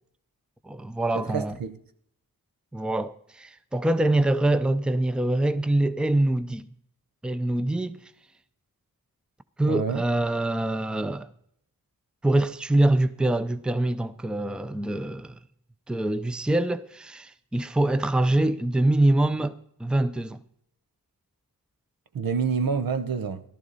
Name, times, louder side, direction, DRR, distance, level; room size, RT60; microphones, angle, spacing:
voice 1, 0.6-1.5 2.7-6.7 7.2-8.0 9.6-11.3 12.2-15.3 15.9-19.5 19.8-20.4, right 1 dB, 5° right, 0.5 m, -24 dB
voice 2, 1.1-1.8 9.6-10.0 22.1-23.4, right 5 dB, 75° right, 0.9 m, -27 dB
14.0 x 12.0 x 4.1 m
wide cardioid pair, 75°, 35 cm